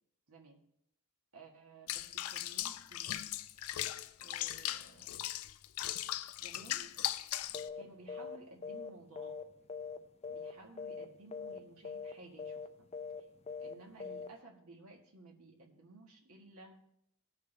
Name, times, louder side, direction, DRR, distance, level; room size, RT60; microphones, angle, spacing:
voice 1, 0.3-0.6 1.3-3.3 4.2-5.3 6.4-6.9 7.7-9.4 10.3-12.7 13.6-16.8, right 2 dB, 80° right, -1 dB, 1.7 m, -56 dB
Water / Bathtub (filling or washing), 1.9-7.7, left 13 dB, 80° left, 0.5 m, -38 dB
sound 1, 7.5-7.8 8.1-8.4 8.6-10.0 10.2-10.5 10.8-11.1 11.3-11.6 11.8-12.1 12.4-12.7 12.9-13.2 13.5-13.7 14.0-14.3, left 5 dB, 30° left, 0.5 m, -42 dB
18.5 x 6.7 x 3.4 m, 0.76 s
head